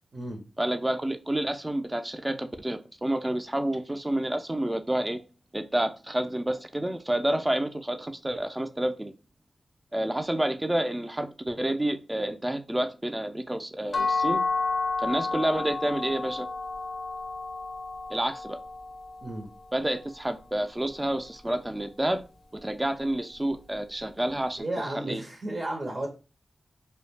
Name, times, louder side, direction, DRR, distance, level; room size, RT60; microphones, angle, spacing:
voice 1, 0.6-5.2 5.5-9.1 9.9-14.4 15.0-16.5 18.1-18.6 19.7-22.2 22.6-25.2, right 1 dB, 20° right, 8 dB, 0.4 m, -29 dB
sound 1, 13.9-19.7, left 4 dB, 60° left, 0.4 m, -31 dB
voice 2, 24.6-26.1, right 1 dB, 55° right, 1 dB, 0.6 m, -33 dB
2.3 x 2.1 x 3.2 m, 0.33 s
cardioid pair, 45°, 0 cm